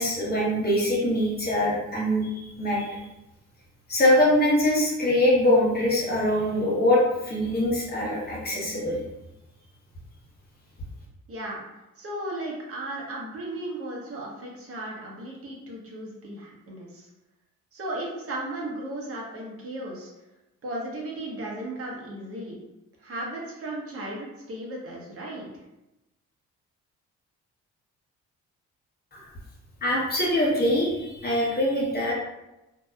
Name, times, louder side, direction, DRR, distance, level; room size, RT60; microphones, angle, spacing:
voice 1, 0.0-3.0 3.9-9.0 29.1-29.2 29.8-32.1, left 1 dB, 30° left, -4 dB, 1.0 m, -23 dB
voice 2, 11.3-11.6 12.0-17.1 17.7-20.1 20.6-22.6 23.0-25.5, right 1 dB, 50° right, -3 dB, 0.9 m, -35 dB
2.7 x 2.2 x 2.3 m, 0.95 s
cardioid pair, 90°, 30 cm